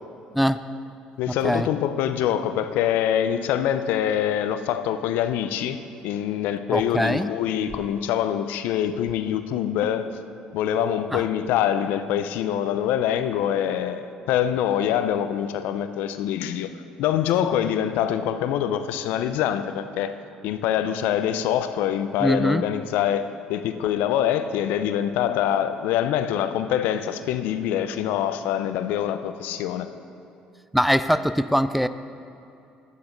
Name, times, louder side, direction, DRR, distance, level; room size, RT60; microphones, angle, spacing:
voice 1, 1.2-10.1 10.5-16.7 17.0-20.1 20.4-23.2 23.5-29.9, left 10 dB, 75° left, 10 dB, 0.5 m, -25 dB
voice 2, 6.7-7.3 11.1-11.2 22.2-22.6 30.7-31.9, equal, ahead, 13 dB, 0.4 m, -22 dB
11.0 x 9.6 x 3.9 m, 2.7 s
hypercardioid pair, 65°, 3 cm